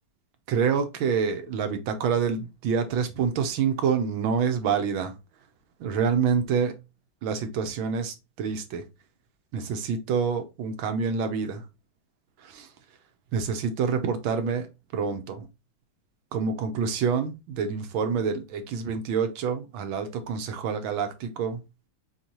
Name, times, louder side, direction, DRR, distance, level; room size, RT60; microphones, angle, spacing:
voice 1, 0.5-5.1 5.8-6.8 7.2-8.9 9.5-11.6 12.4-12.7 13.3-15.5 16.3-21.6, right 6 dB, 85° right, 1.6 m, -27 dB
4.4 x 4.0 x 3.0 m
omnidirectional pair, 2.1 m